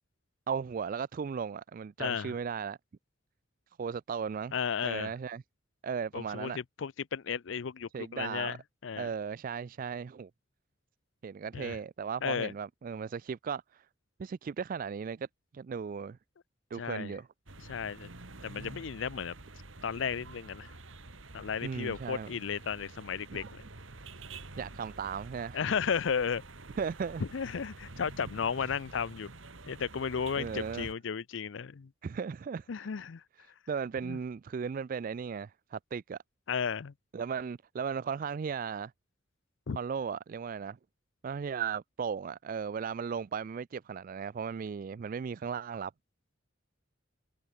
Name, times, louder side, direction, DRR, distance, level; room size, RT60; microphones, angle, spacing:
voice 1, 0.5-2.8 3.8-4.5 4.8-5.4 5.8-6.6 7.9-8.6 9.0-10.3 11.2-13.9 14.2-15.3 15.5-16.2 16.7-17.3 21.6-22.3 23.3-23.4 24.6-25.6 26.8-27.2 30.4-30.9 32.0-32.9 33.7-36.2 37.1-38.9 39.7-40.8 41.2-45.9, right 6 dB, 45° right, 0.3 m, -36 dB
voice 2, 2.0-2.3 4.5-5.1 6.1-9.1 11.5-11.8 12.2-12.5 16.8-17.2 17.7-18.1 18.4-19.3 19.8-20.7 21.3-23.6 25.5-26.4 27.3-29.3 29.7-31.9 32.7-33.2 34.0-34.2 36.5-36.9 39.7-39.8, left 6 dB, 70° left, 0.5 m, -34 dB
sound 1, 17.5-30.9, right 2 dB, 80° right, 2.6 m, -48 dB
head